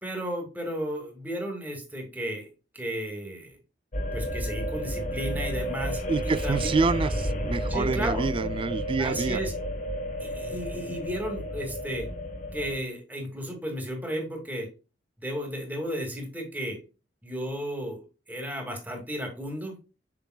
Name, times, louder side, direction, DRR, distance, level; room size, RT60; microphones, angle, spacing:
voice 1, 0.0-2.5 2.7-3.6 4.1-6.7 7.7-8.3 9.0-9.5 10.2-12.1 12.5-14.7 15.2-16.8 17.2-19.8, equal, 10° right, 2.2 m, -34 dB
sound 1, 3.9-12.8, equal, 45° left, 1.3 m, -31 dB
voice 2, 6.1-9.4, right 4 dB, 30° right, 0.3 m, -27 dB
7.0 x 5.8 x 2.3 m
head